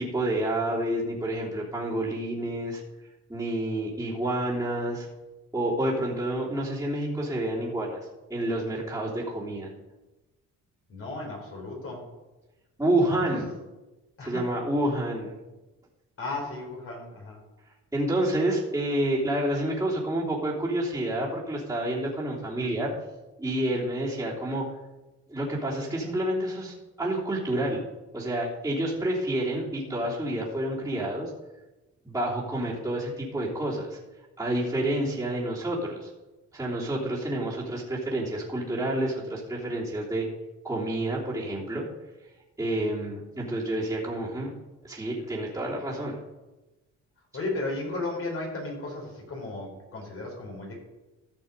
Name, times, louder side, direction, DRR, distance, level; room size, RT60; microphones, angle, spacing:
voice 1, 0.0-2.8 3.3-5.1 5.5-8.0 8.3-9.7 12.8-13.5 14.2-15.3 17.9-22.9 23.4-24.6 25.3-27.8 28.1-31.3 32.0-34.0 34.4-36.1 36.5-40.2 40.6-41.9 42.6-44.5 44.8-46.2, right 1 dB, 10° right, -7 dB, 3.2 m, -29 dB
voice 2, 10.9-12.1 13.1-13.5 14.2-14.5 16.2-17.4 47.3-50.8, left 2 dB, 50° left, -1 dB, 4.6 m, -35 dB
14.0 x 6.1 x 5.3 m, 1.1 s
cardioid pair, 90°, 30 cm